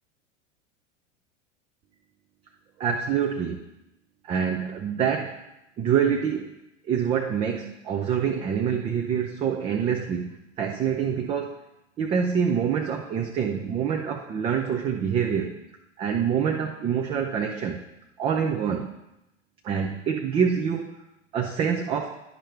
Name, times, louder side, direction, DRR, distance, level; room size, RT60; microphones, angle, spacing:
voice 1, 2.8-3.6 4.2-5.4 5.8-6.5 6.8-11.6 12.0-15.6 16.0-17.8 18.2-18.9 19.6-20.9 21.3-22.2, right 7 dB, 15° right, 3 dB, 0.4 m, -26 dB
10.0 x 5.3 x 4.5 m, 0.91 s
figure-of-eight pair, 85°, 38 cm